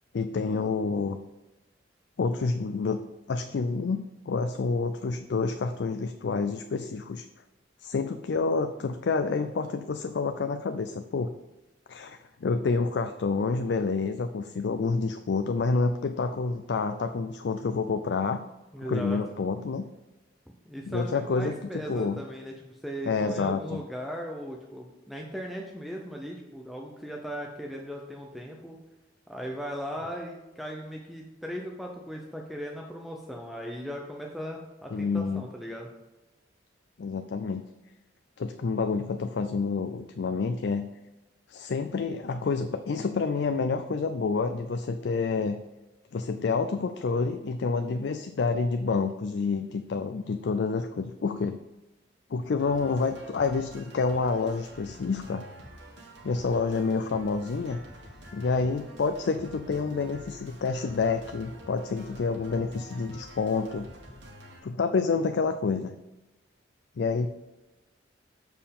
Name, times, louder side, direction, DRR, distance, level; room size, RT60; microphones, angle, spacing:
voice 1, 0.1-1.2 2.2-3.0 3.3-7.2 7.8-11.3 11.9-18.4 18.8-19.9 20.9-22.2 23.0-23.8 34.9-35.5 37.0-37.6 38.4-40.9 41.5-45.6 46.1-51.6 52.3-55.4 56.2-57.8 58.3-63.9 64.6-66.0 67.0-67.3, left 4 dB, 65° left, 8 dB, 0.4 m, -28 dB
voice 2, 18.7-19.2 20.6-28.8 29.3-35.9, equal, ahead, 0 dB, 0.6 m, -38 dB
sound 1, 52.6-64.6, right 1 dB, 70° right, 1.8 m, -48 dB
7.4 x 4.5 x 5.3 m, 1.1 s
head